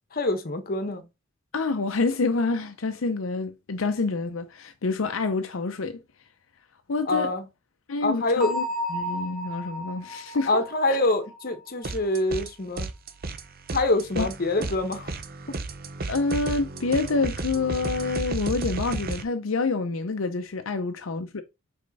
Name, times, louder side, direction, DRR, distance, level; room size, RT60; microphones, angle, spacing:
voice 1, 0.1-1.0 7.1-7.4 8.0-8.5 10.5-12.9 13.7-15.1 15.5-15.6, left 2 dB, 45° left, 1.1 m, -25 dB
voice 2, 1.5-6.0 6.9-7.3 7.9-8.6 8.9-10.6 10.9-11.0 14.2-14.3 16.1-21.4, left 3 dB, 75° left, 0.6 m, -27 dB
Bell, 8.4-12.1, left 1 dB, ahead, 2.7 m, -34 dB
sound 1, 11.8-12.5 12.8-19.2, right 3 dB, 50° right, 0.7 m, -33 dB
5.3 x 4.4 x 4.0 m
head